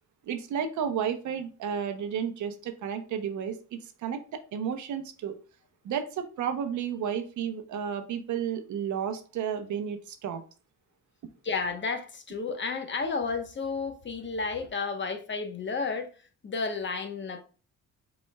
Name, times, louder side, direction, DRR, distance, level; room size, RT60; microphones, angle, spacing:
voice 1, 0.2-3.6 4.0-5.4 5.8-10.4, right 8 dB, 75° right, 0.9 m, -32 dB
voice 2, 11.4-16.1 16.4-17.4, left 4 dB, 40° left, 1.1 m, -32 dB
5.4 x 4.2 x 2.3 m
cardioid pair, 90°, 30 cm